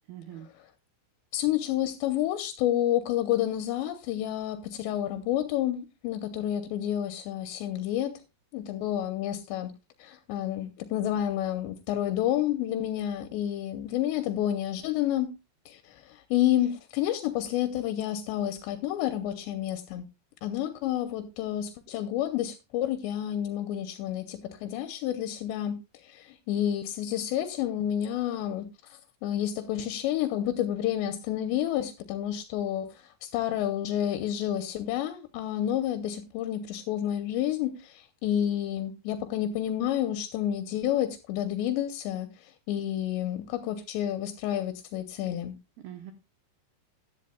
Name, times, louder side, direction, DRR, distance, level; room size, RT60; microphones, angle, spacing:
voice 1, 0.1-0.5 45.8-46.1, right 11 dB, 80° right, 2.3 m, -43 dB
voice 2, 1.3-8.2 8.5-9.7 10.0-15.3 15.7-20.1 20.4-45.6, left 11 dB, 80° left, 2.9 m, -30 dB
16.0 x 11.0 x 2.2 m
omnidirectional pair, 5.2 m